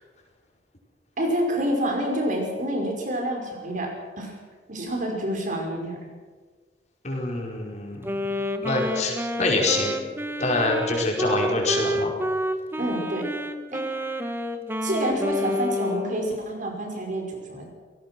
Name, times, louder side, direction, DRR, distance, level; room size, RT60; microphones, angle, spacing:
voice 1, 1.2-4.3 4.7-6.0 12.8-13.3 13.7-13.8 14.8-17.7, right 1 dB, 50° right, 2 dB, 5.6 m, -28 dB
voice 2, 7.0-8.2 8.6-10.0 10.4-12.1, left 2 dB, 45° left, -1 dB, 5.2 m, -25 dB
Wind instrument woodwind instrument, 8.0-16.2, equal, 15° right, 1.3 m, -29 dB
27.5 x 18.0 x 6.3 m, 1.4 s
head